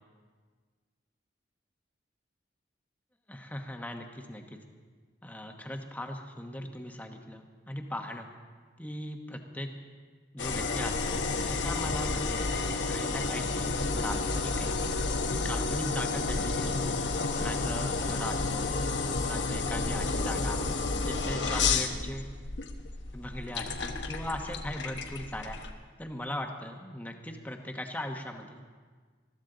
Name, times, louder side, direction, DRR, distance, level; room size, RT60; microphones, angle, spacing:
voice 1, 3.3-4.4 5.2-8.3 8.8-9.7 10.3-12.5 12.9-14.8 15.3-17.0 17.3-18.8 19.1-20.6 21.0-22.3 23.1-25.6 26.0-28.6, left 1 dB, 10° left, 3 dB, 1.0 m, -39 dB
sound 1, 10.4-25.7, left 3 dB, 75° left, 1.1 m, -31 dB
20.5 x 14.0 x 3.9 m, 1.5 s
head